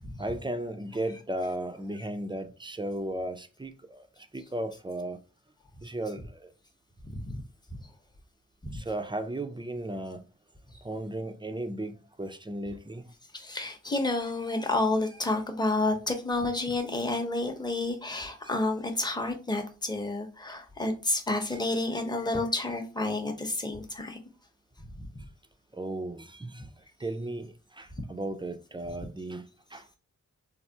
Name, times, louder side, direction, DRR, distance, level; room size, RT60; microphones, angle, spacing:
voice 1, 0.2-5.2 5.8-6.5 8.7-10.2 10.8-13.1 18.4-18.5 21.5-21.6 25.2-25.3 25.7-30.0, right 1 dB, 15° right, 0.4 m, -36 dB
voice 2, 7.1-7.4 8.6-8.7 13.3-24.2 25.0-25.1, left 2 dB, 15° left, 0.7 m, -30 dB
3.3 x 2.0 x 2.7 m
cardioid pair, 45°, 32 cm